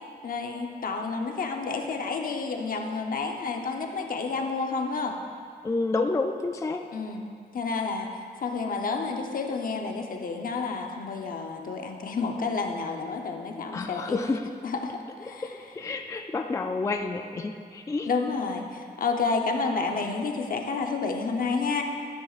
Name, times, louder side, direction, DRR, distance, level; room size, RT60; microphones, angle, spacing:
voice 1, 0.2-5.2 6.9-7.2 7.5-8.1 8.4-14.2 14.6-15.6 18.0-21.8, left 4 dB, 60° left, 3 dB, 0.9 m, -30 dB
voice 2, 5.6-6.9 13.7-14.5 15.4-15.5 15.8-18.1, left 3 dB, 20° left, 4 dB, 0.3 m, -29 dB
13.0 x 9.8 x 2.5 m, 2.2 s
wide cardioid pair, 150°, 17 cm